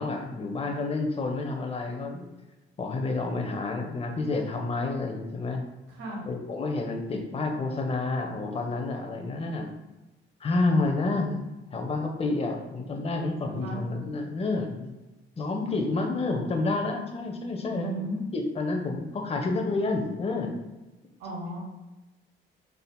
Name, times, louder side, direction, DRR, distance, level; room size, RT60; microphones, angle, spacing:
voice 1, 0.0-2.3 2.8-5.6 6.3-9.7 10.4-11.4 11.7-14.9 15.4-18.1 18.3-20.6, left 3 dB, 30° left, 3 dB, 0.6 m, -29 dB
voice 2, 13.4-13.8 17.7-18.2 21.2-21.6, right 2 dB, 80° right, -3 dB, 1.2 m, -35 dB
3.5 x 2.6 x 2.2 m, 1.1 s
cardioid pair, 90°, 20 cm